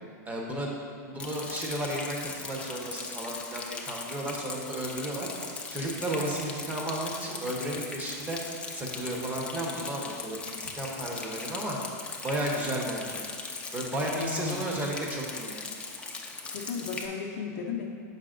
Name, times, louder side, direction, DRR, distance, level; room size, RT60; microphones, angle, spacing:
voice 1, 0.3-0.7 1.0-5.3 5.7-8.4 8.7-11.8 12.2-13.2 13.7-15.6, right 1 dB, 15° right, -2 dB, 1.0 m, -33 dB
Rain, 1.2-17.1, left 3 dB, 10° left, 0.5 m, -39 dB
voice 2, 14.1-14.8 16.4-17.9, left 6 dB, 55° left, -3 dB, 0.6 m, -35 dB
7.2 x 5.7 x 2.5 m, 2.5 s
supercardioid pair, 130°, 10 cm